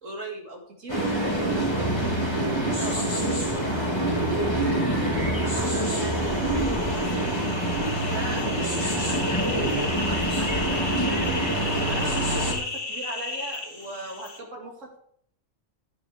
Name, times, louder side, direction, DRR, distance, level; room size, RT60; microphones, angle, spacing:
voice 1, 0.0-2.0 2.6-3.8 4.1-7.4 8.1-15.0, right 2 dB, 80° right, -1 dB, 2.8 m, -38 dB
sound 1, 0.9-12.5, right 1 dB, 20° left, 3.5 m, -26 dB
sound 2, 5.9-14.4, left 3 dB, 45° left, 2.0 m, -34 dB
13.0 x 9.7 x 5.0 m, 0.63 s
omnidirectional pair, 1.3 m